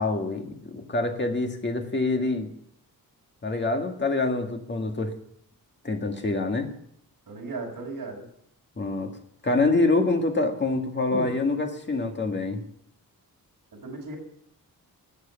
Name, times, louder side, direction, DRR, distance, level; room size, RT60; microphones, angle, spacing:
voice 1, 0.0-2.5 3.4-5.1 5.8-6.7 8.8-9.1 9.4-12.6, left 3 dB, 30° left, 3 dB, 2.0 m, -26 dB
voice 2, 7.3-8.3 11.1-11.4 13.7-14.2, right 3 dB, 65° right, 0 dB, 5.3 m, -35 dB
19.5 x 8.1 x 7.0 m, 0.70 s
wide cardioid pair, 170°, 37 cm